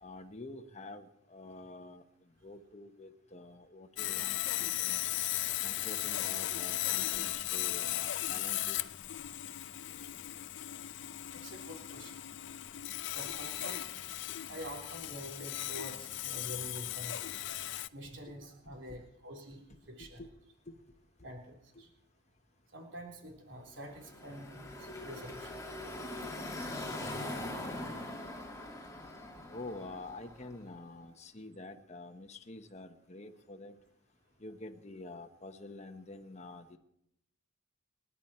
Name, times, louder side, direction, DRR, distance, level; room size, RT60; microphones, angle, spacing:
voice 1, 0.0-2.0 2.4-5.1 5.6-8.8 18.3-18.4 18.6-19.0 20.0-20.3 20.7-20.8 29.5-33.8 34.4-36.8, left 2 dB, 35° left, 6 dB, 1.1 m, -48 dB
Sawing, 4.0-17.9, left 14 dB, 60° left, 0.5 m, -37 dB
voice 2, 11.1-12.2 13.1-13.8 14.5-17.2 17.9-20.2 21.2-21.9 22.7-25.5 29.2-29.3, equal, 65° right, 1 dB, 3.6 m, -47 dB
Car passing by / Traffic noise roadway noise, 23.8-30.8, left 1 dB, 15° left, 2.5 m, -42 dB
29.0 x 11.0 x 4.4 m, 0.81 s
head